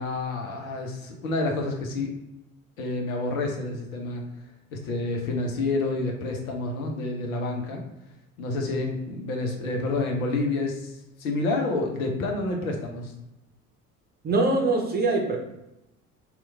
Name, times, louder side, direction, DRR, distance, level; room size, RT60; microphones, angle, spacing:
voice 1, 0.0-2.1 2.8-4.2 4.7-7.8 8.4-13.1, left 2 dB, 70° left, 1 dB, 0.8 m, -29 dB
voice 2, 14.2-15.4, right 3 dB, 20° right, 0 dB, 0.7 m, -23 dB
3.0 x 2.3 x 3.3 m, 0.90 s
figure-of-eight pair, 60°, 43 cm